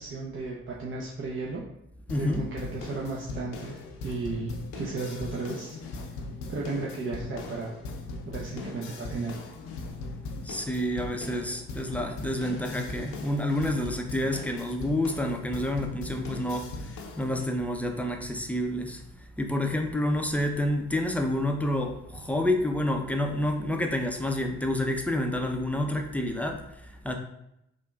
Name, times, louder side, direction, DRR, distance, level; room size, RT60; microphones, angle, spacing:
voice 1, 0.0-1.6 2.2-5.8 6.5-7.7 8.3-9.4, right 3 dB, 40° right, -3 dB, 0.6 m, -34 dB
sound 1, 2.1-17.5, left 3 dB, 65° left, 0.5 m, -40 dB
voice 2, 2.1-2.4 10.4-19.0 19.4-27.1, left 1 dB, 5° left, 3 dB, 0.5 m, -29 dB
3.5 x 2.3 x 2.2 m, 0.81 s
hypercardioid pair, 40°, 31 cm